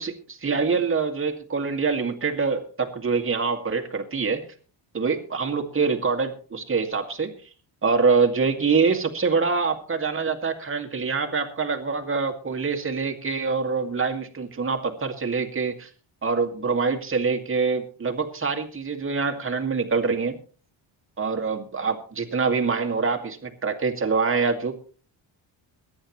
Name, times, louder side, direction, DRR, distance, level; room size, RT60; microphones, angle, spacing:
voice 1, 0.0-4.5 4.9-7.3 7.8-15.9 16.2-20.4 21.2-24.8, right 5 dB, 25° right, 3 dB, 2.1 m, -25 dB
22.5 x 10.5 x 3.2 m, 0.40 s
cardioid pair, 160°, 48 cm